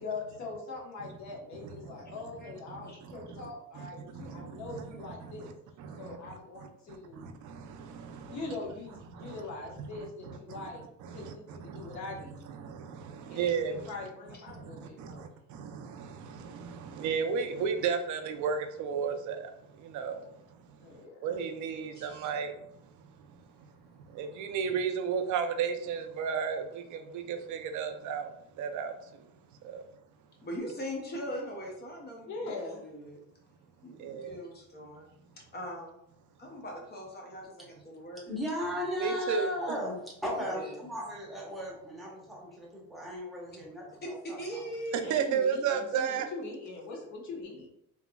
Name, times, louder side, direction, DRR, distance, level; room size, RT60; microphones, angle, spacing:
voice 1, 0.0-5.5 6.0-7.2 8.3-10.8 11.1-12.7 13.3-15.3 20.8-21.4 32.2-32.8 45.0-47.7, left 3 dB, 55° left, -1 dB, 1.0 m, -42 dB
voice 2, 2.8-3.5 3.8-4.8 5.4-5.5 5.8-6.2 7.2-8.4 9.2-9.3 10.3-10.7 11.0-12.0 12.6-13.9 14.5-20.2 21.2-22.5 24.1-29.3 29.6-29.8 34.0-34.4 39.0-39.5 44.9-46.3, right 6 dB, 60° right, 6 dB, 0.5 m, -34 dB
voice 3, 21.9-22.3 30.4-33.2 33.8-35.1 35.3-36.0 36.4-38.2 40.5-40.9 44.0-45.1, equal, 30° left, 0 dB, 0.5 m, -41 dB
voice 4, 38.3-44.6, left 1 dB, ahead, -4 dB, 0.8 m, -36 dB
3.5 x 2.9 x 2.2 m, 0.77 s
cardioid pair, 160°, 34 cm